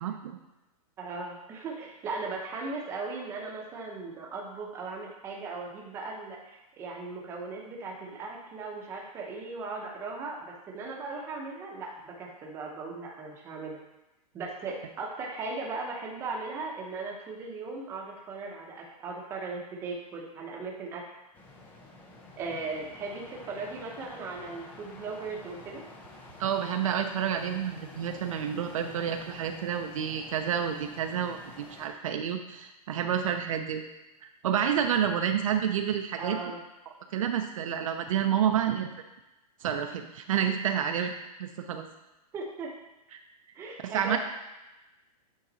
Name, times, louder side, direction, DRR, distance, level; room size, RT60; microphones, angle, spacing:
voice 1, 0.0-0.4 26.4-33.8 34.2-36.4 37.1-38.9 39.6-41.1 41.4-41.9 43.1-43.2 43.8-44.2, right 8 dB, 55° right, 5 dB, 0.5 m, -29 dB
voice 2, 1.0-13.8 14.3-21.0 22.4-25.8 36.2-36.6 42.3-42.7 43.5-44.2, right 3 dB, 10° right, -1 dB, 0.7 m, -38 dB
sound 1, 21.3-31.9, left 2 dB, 10° left, 0.4 m, -49 dB
8.8 x 3.9 x 4.0 m, 1.0 s
hypercardioid pair, 170°, 20 cm